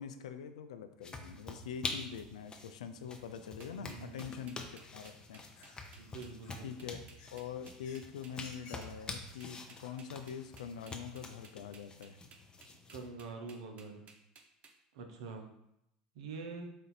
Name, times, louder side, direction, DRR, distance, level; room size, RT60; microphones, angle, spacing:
voice 1, 0.0-4.6 4.9-5.4 6.6-7.0 7.3-12.2, left 7 dB, 85° left, 9 dB, 0.4 m, -44 dB
sound 1, 1.0-13.1, left 3 dB, 25° left, 0.6 m, -47 dB
sound 2, 3.4-10.1, left 4 dB, 60° left, 1.1 m, -61 dB
sound 3, 3.6-14.7, right 4 dB, 45° right, 0.6 m, -58 dB
voice 2, 3.7-4.4 6.0-6.7 12.9-14.1 14.9-15.5 16.1-16.7, right 4 dB, 75° right, 4 dB, 0.7 m, -45 dB
4.2 x 2.6 x 4.0 m, 0.80 s
hypercardioid pair, 85°, 3 cm